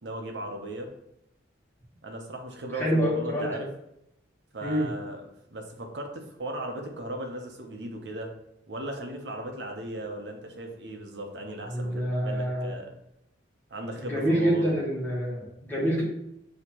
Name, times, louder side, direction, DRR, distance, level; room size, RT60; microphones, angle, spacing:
voice 1, 0.0-0.9 2.0-3.7 4.5-8.3 8.7-12.9 13.7-14.7, right 1 dB, 60° right, 3 dB, 0.8 m, -37 dB
voice 2, 2.7-3.6 4.6-4.9 11.7-12.7 14.0-16.0, equal, 10° left, -6 dB, 1.4 m, -27 dB
6.4 x 2.8 x 2.9 m, 0.83 s
head